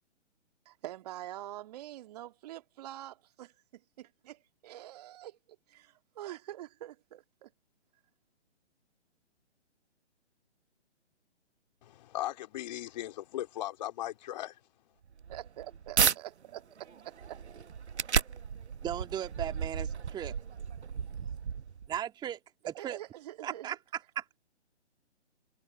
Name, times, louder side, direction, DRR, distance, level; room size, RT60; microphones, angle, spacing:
voice 1, 0.7-7.5 15.3-16.6 17.0-17.4 22.7-23.8, right 14 dB, 35° right, 1.9 m, -45 dB
voice 2, 11.8-14.6, left 14 dB, 35° left, 3.3 m, -38 dB
sound 1, 15.0-16.2 16.7-22.0, right 7 dB, 70° right, 1.0 m, -33 dB
voice 3, 18.8-20.4 21.9-22.4 22.7-23.0 23.4-23.8 24.2-24.4, right 10 dB, 10° right, 2.0 m, -36 dB
figure-of-eight pair, 135°, 35 cm